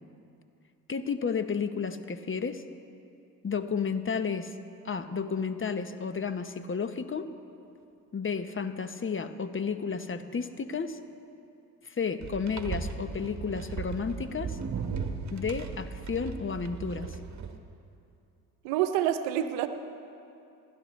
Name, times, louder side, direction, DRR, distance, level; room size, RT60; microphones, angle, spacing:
voice 1, 0.9-2.6 3.4-4.5 4.8-7.3 8.1-11.0 11.8-14.6 15.3-17.2, left 5 dB, 30° left, 10 dB, 1.0 m, -32 dB
sound 1, 12.2-17.6, right 5 dB, 40° right, 1.4 m, -37 dB
voice 2, 18.6-19.7, right 11 dB, 80° right, 9 dB, 0.8 m, -27 dB
27.0 x 12.0 x 3.2 m, 2.6 s
hypercardioid pair, 55°, 41 cm